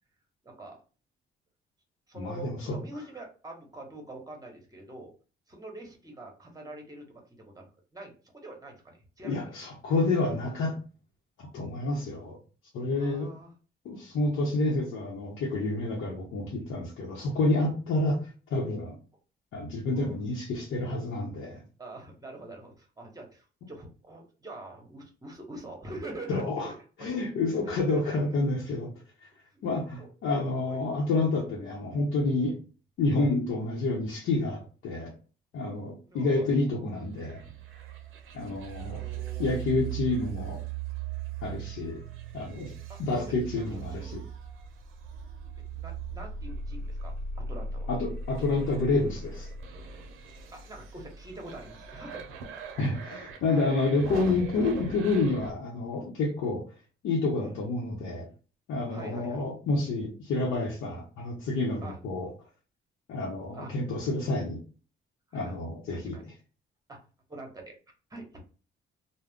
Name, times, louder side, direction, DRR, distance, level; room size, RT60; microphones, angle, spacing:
voice 1, 0.4-0.8 2.1-5.1 5.5-7.2 7.5-9.4 13.0-13.5 19.9-20.2 21.8-26.7 27.0-28.2 29.5-29.6 30.0-30.1 30.7-30.8 36.1-36.5 38.9-39.6 42.9-44.2 45.7-47.9 50.5-52.4 57.4-57.7 58.9-59.4 61.8-62.0 63.5-63.7 65.3-65.6 65.9-66.2 66.9-67.8 68.1-68.4, right 2 dB, 20° right, 2 dB, 1.0 m, -45 dB
voice 2, 2.1-2.8 9.2-10.7 11.4-12.4 12.7-13.3 13.8-18.9 19.5-21.6 26.3-26.7 27.0-28.9 29.6-32.6 33.0-35.1 35.5-37.4 38.3-39.0 39.4-40.6 41.4-42.0 42.3-42.7 43.0-44.2 47.9-49.5 52.8-56.6 57.0-58.3 58.7-62.3 63.1-64.6 65.3-66.2, left 2 dB, 80° left, -3 dB, 0.8 m, -29 dB
sound 1, 37.2-55.5, right 5 dB, 90° right, 0.6 m, -39 dB
2.3 x 2.1 x 3.4 m, 0.37 s
cardioid pair, 90°, 20 cm